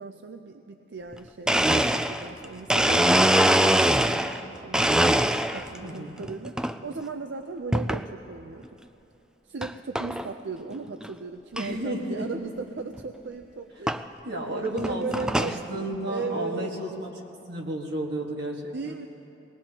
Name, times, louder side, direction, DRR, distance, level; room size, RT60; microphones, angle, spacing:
voice 1, 0.0-5.0 5.5-8.7 9.4-14.0 14.3-16.7 18.7-19.1, right 4 dB, 85° right, 6 dB, 0.5 m, -37 dB
Domestic sounds home sounds, 1.1-1.2 1.5-4.4 4.7-5.8 6.2-6.7 7.7-8.0 8.6-8.7 9.6-9.7 10.0-10.3 10.7-10.8 11.0-11.1 11.6-11.7 13.0-13.1 13.9-14.0 14.7-15.6, right 1 dB, 5° right, 0.3 m, -22 dB
voice 2, 5.8-6.2 11.6-12.3 14.2-17.1 17.5-19.0, right 1 dB, 65° right, -1 dB, 1.7 m, -32 dB
22.0 x 19.0 x 2.9 m, 3.0 s
head